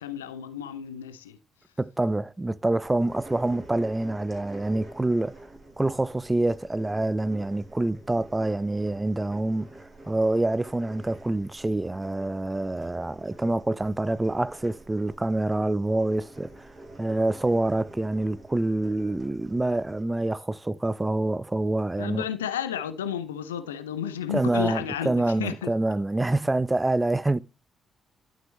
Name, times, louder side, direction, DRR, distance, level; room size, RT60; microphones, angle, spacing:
voice 1, 0.0-1.4 22.0-25.1 25.4-25.7, left 9 dB, 80° left, 0.4 m, -32 dB
voice 2, 1.8-5.5 5.8-16.7 17.0-22.3 24.3-27.4, right 2 dB, 15° right, 0.4 m, -26 dB
sound 1, 2.8-20.0, right 2 dB, 30° right, 6.1 m, -48 dB
11.5 x 6.1 x 3.1 m
figure-of-eight pair, 40°, 0 cm